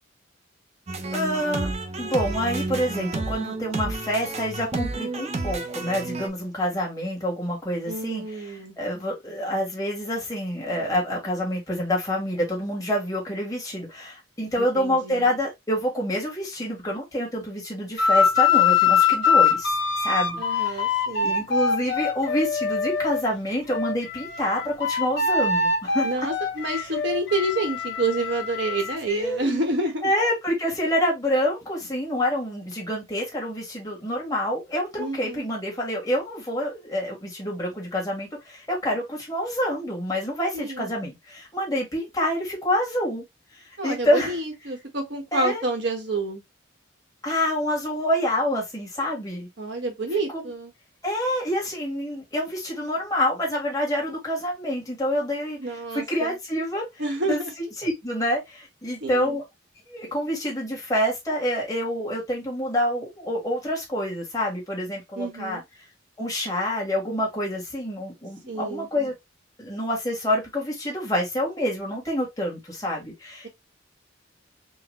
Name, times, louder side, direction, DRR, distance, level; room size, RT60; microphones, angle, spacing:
sound 1, 0.9-6.3, right 2 dB, 30° right, 0.5 m, -31 dB
voice 1, 1.1-1.7 2.0-8.2 8.8-19.7 20.0-20.9 21.2-26.1 26.8-26.9 29.1-29.6 30.0-43.2 43.5-44.3 45.3-45.6 47.2-49.5 51.0-55.6 55.9-56.9 57.3-57.4 57.8-59.4 59.9-65.6 66.2-69.1 69.6-73.5, equal, 15° left, 1.5 m, -27 dB
voice 2, 7.9-8.7 14.6-15.4 20.4-21.4 26.0-30.1 35.0-35.5 40.5-40.9 43.8-46.4 49.6-50.7 55.6-56.4 57.0-57.5 59.0-59.4 65.2-65.6 68.5-68.9, right 2 dB, 60° right, 1.2 m, -29 dB
sound 2, 18.0-23.2 23.7-29.0, left 6 dB, 55° left, 1.3 m, -23 dB
3.9 x 2.2 x 3.0 m
head